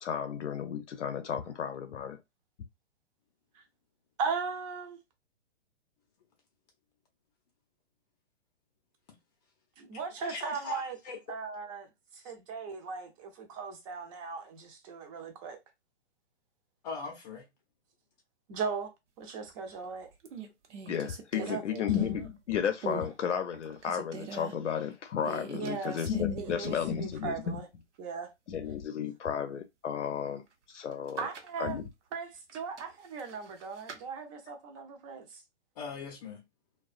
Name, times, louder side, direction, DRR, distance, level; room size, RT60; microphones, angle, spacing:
voice 1, 0.0-2.2 20.9-27.6 28.5-31.3 31.6-31.8, left 8 dB, 80° left, 0.6 m, -33 dB
voice 2, 4.2-5.0 9.8-11.0 11.3-11.9 12.1-15.6 18.5-20.1 21.4-21.8 25.6-27.7 28.0-28.3 31.2-31.8 32.1-35.4, right 5 dB, 30° right, 0.7 m, -38 dB
voice 3, 10.2-11.2 16.8-17.5 35.8-36.4, left 4 dB, 35° left, 0.6 m, -40 dB
sound 1, 19.5-19.9 20.2-22.4 22.8-23.1 23.5-24.5 25.2-27.0 27.3-27.4 30.9-31.6 32.5-34.0, right 6 dB, 75° right, 0.9 m, -43 dB
2.3 x 2.3 x 2.4 m
hypercardioid pair, 125°, 35 cm